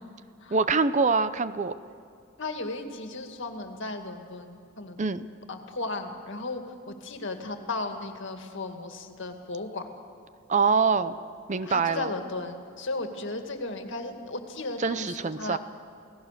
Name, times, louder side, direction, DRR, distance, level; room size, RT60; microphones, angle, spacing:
voice 1, 0.5-1.7 5.0-5.2 10.5-11.1 11.5-12.1 14.8-15.6, right 4 dB, 35° right, 13 dB, 0.6 m, -24 dB
voice 2, 2.4-5.0 5.5-9.9 11.6-15.6, left 2 dB, 60° left, 5 dB, 2.0 m, -35 dB
29.0 x 18.0 x 6.7 m, 2.4 s
head